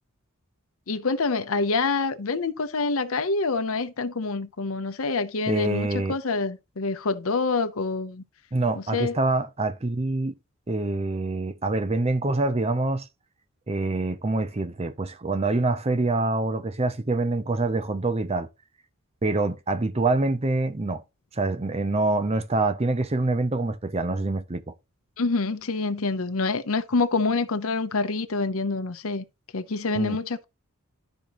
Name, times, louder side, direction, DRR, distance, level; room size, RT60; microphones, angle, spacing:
voice 1, 0.9-8.2 8.7-9.2 25.2-29.2 29.5-30.4, left 3 dB, 65° left, 0.8 m, -26 dB
voice 2, 5.5-6.2 8.5-10.3 10.7-13.1 13.7-18.5 19.2-21.0 21.3-24.6 29.9-30.2, right 2 dB, 30° right, 0.6 m, -25 dB
12.5 x 5.2 x 3.0 m
head